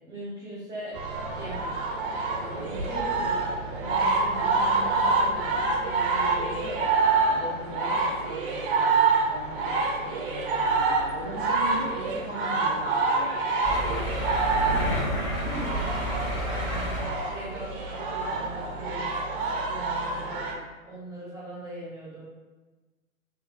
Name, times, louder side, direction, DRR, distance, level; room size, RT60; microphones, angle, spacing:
voice 1, 0.1-1.0 1.3-1.7 14.5-16.9 17.3-19.0 19.4-20.6 20.9-22.2, right 1 dB, 10° right, -9 dB, 1.0 m, -40 dB
sound 1, 0.9-20.6, right 3 dB, 40° right, 0.6 m, -27 dB
voice 2, 2.4-6.9 7.3-9.0 9.2-13.5, equal, 60° left, -5 dB, 1.5 m, -39 dB
sound 2, 13.6-17.6 18.3-18.5 18.9-19.0, equal, 25° left, 1.5 m, -30 dB
3.3 x 3.2 x 2.6 m, 1.2 s
figure-of-eight pair, 125°, 42 cm